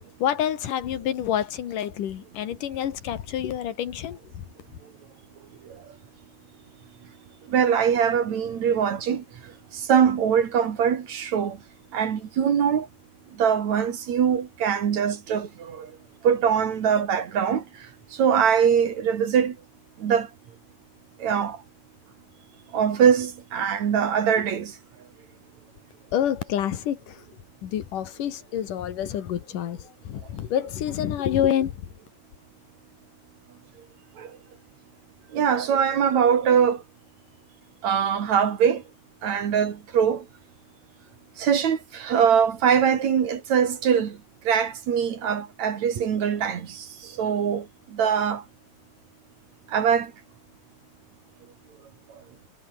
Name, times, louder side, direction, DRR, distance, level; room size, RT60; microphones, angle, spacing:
voice 1, 0.2-4.2 26.1-27.2 27.6-29.8 30.0-31.7, left 10 dB, 70° left, 3.2 m, -27 dB
voice 2, 7.5-9.2 9.9-11.6 11.9-12.9 13.4-15.9 16.2-17.6 18.2-19.5 20.0-20.3 21.2-21.6 22.7-24.7 34.2-34.3 35.3-36.8 37.8-38.8 39.2-40.2 41.4-44.2 44.5-46.8 47.2-47.6 47.9-48.4 49.7-50.1, right 7 dB, 60° right, 3.1 m, -22 dB
omnidirectional pair, 3.9 m